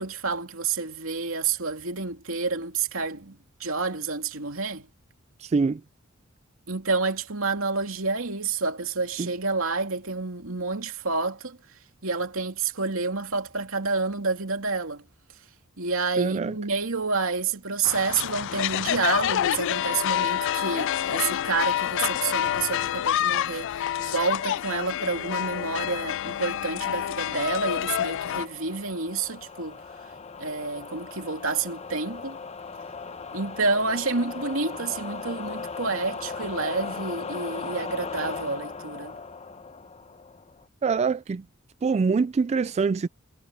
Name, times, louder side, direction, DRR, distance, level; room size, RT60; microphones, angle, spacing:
voice 1, 0.0-4.9 6.7-11.6 12.0-15.0 15.8-29.8 30.4-32.4 33.3-39.2, right 4 dB, 75° right, 2.8 m, -29 dB
voice 2, 5.4-5.8 9.2-9.3 16.2-16.6 40.8-41.4 41.8-43.1, right 5 dB, 30° right, 0.3 m, -24 dB
sound 1, 17.8-28.5, left 11 dB, 60° left, 0.3 m, -27 dB
sound 2, 24.5-40.7, left 4 dB, 30° left, 0.9 m, -39 dB
head